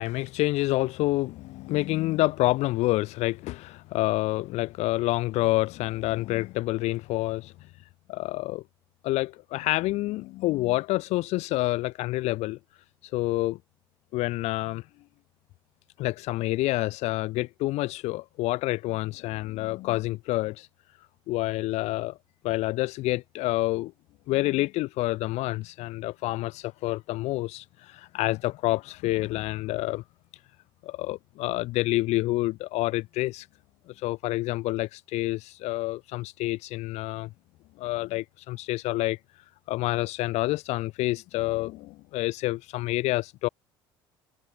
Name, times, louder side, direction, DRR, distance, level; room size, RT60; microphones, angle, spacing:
voice 1, 0.0-7.5 8.1-8.6 9.0-12.6 13.1-13.6 14.1-14.8 16.0-20.7 21.3-22.2 22.4-23.9 24.3-30.0 30.8-33.5 33.9-37.3 37.8-39.2 39.7-43.5, left 18 dB, 65° left, 1.4 m, -28 dB
hypercardioid pair, 70°, 12 cm